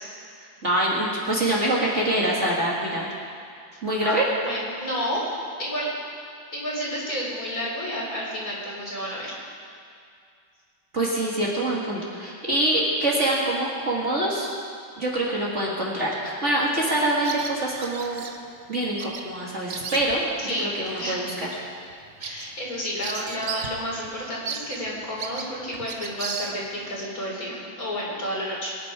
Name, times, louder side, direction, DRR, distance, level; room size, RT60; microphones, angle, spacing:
voice 1, 0.6-3.1 3.8-4.2 10.9-14.5 15.0-18.2 18.7-20.3 20.6-21.5, right 1 dB, 35° right, -5 dB, 2.2 m, -25 dB
voice 2, 4.0-5.3 5.6-5.9 6.5-9.3 20.4-21.2 22.2-28.8, equal, 45° left, -5 dB, 4.1 m, -31 dB
Bird vocalization bird call bird song, 17.2-18.4 19.0-19.3 19.5-20.3 20.8-21.0 21.5-21.6 21.9-23.8 24.0-24.1 24.4-26.9, right 5 dB, 50° right, 1.1 m, -35 dB
23.0 x 9.8 x 4.9 m, 2.3 s
omnidirectional pair, 2.2 m